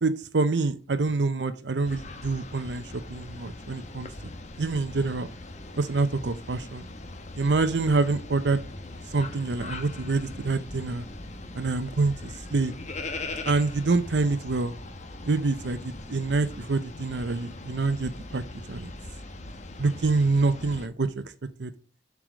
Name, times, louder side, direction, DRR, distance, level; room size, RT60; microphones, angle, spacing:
voice 1, 0.0-4.1 4.6-5.3 5.8-6.9 7.4-8.6 9.1-11.0 11.5-12.7 13.5-14.7 15.3-18.9 19.8-21.2 21.6-21.7, right 3 dB, 70° right, 12 dB, 0.7 m, -26 dB
sound 1, 1.8-20.9, left 2 dB, 40° left, 1.1 m, -40 dB
7.6 x 4.8 x 6.1 m, 0.37 s
head